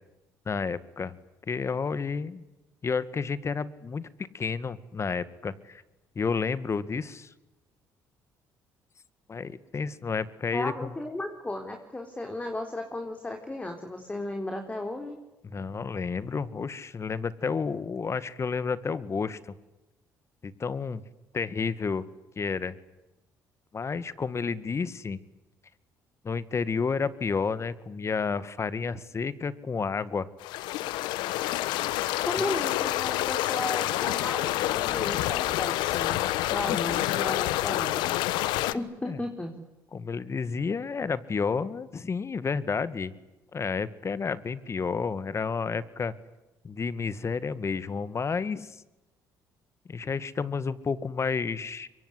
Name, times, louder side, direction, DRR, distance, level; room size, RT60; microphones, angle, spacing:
voice 1, 0.5-1.2 1.5-2.4 2.8-4.1 4.3-5.8 6.2-7.3 9.3-10.9 15.4-19.4 20.4-21.0 21.3-22.1 22.4-22.8 23.7-25.2 26.2-30.3 36.7-36.8 38.7-38.8 39.1-39.2 39.9-43.1 43.5-46.1 46.6-48.8 49.9-51.9, left 5 dB, 35° left, 16 dB, 2.0 m, -31 dB
voice 2, 10.5-15.2 32.3-36.2 36.5-38.2 38.7-39.6, left 1 dB, 15° left, 4 dB, 4.0 m, -35 dB
sound 1, 30.4-38.7, left 16 dB, 80° left, 1.1 m, -28 dB
25.0 x 23.5 x 10.0 m, 0.99 s
supercardioid pair, 70°, 8 cm